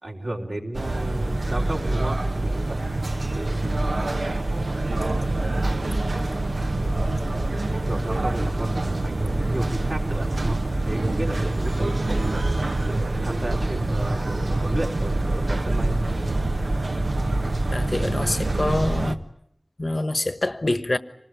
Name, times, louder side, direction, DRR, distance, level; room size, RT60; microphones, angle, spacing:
voice 1, 0.0-2.8 7.7-12.7 13.2-16.5, right 1 dB, 70° right, 3.8 m, -33 dB
sound 1, 0.7-19.2, right 2 dB, 85° right, 1.2 m, -25 dB
voice 2, 17.7-19.2 19.8-21.0, left 2 dB, 60° left, 1.3 m, -26 dB
26.5 x 20.0 x 9.2 m
wide cardioid pair, 45°, 0 cm